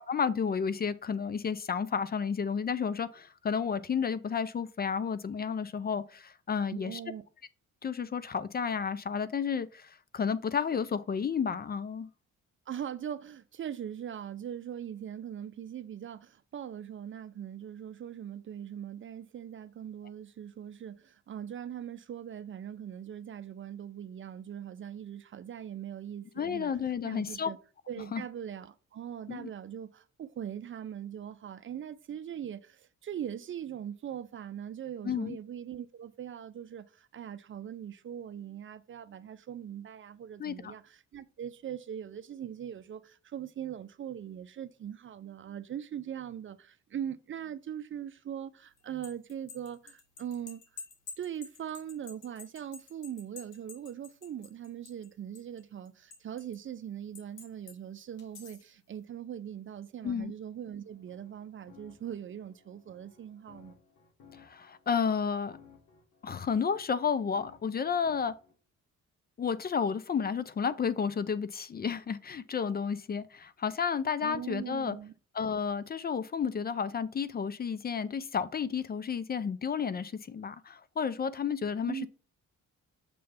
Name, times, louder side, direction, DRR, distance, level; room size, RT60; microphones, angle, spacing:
voice 1, 0.1-7.0 7.8-12.1 26.4-27.5 28.1-28.2 29.3-29.5 35.0-35.4 40.4-40.7 60.0-60.3 64.3-65.6 66.2-68.3 69.4-75.0 75.3-82.1, left 6 dB, 30° left, 0.5 m, -31 dB
voice 2, 6.7-7.2 12.7-26.7 27.0-27.6 27.9-50.6 51.2-63.8 74.2-75.1 81.8-82.1, right 9 dB, 40° right, 0.5 m, -41 dB
sound 1, 48.8-55.1 55.4-56.6 57.2-57.8 58.2-58.7, left 5 dB, 85° left, 1.8 m, -49 dB
sound 2, 60.8-68.5, left 6 dB, 70° left, 2.2 m, -59 dB
6.8 x 3.2 x 5.6 m
cardioid pair, 90°, 30 cm